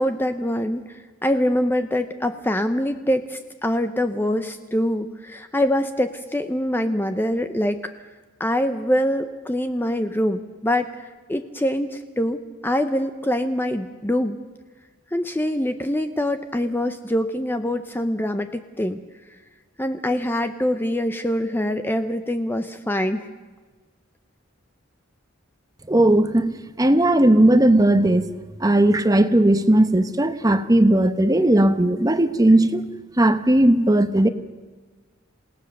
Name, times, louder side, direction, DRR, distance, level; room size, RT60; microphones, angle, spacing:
voice 1, 0.0-7.9 8.4-14.4 15.1-19.0 19.8-23.2, left 1 dB, 10° left, 8 dB, 0.7 m, -24 dB
voice 2, 25.9-28.3 28.6-32.8 33.2-34.3, right 1 dB, 20° right, 10 dB, 0.9 m, -17 dB
28.0 x 17.5 x 6.7 m, 1.4 s
head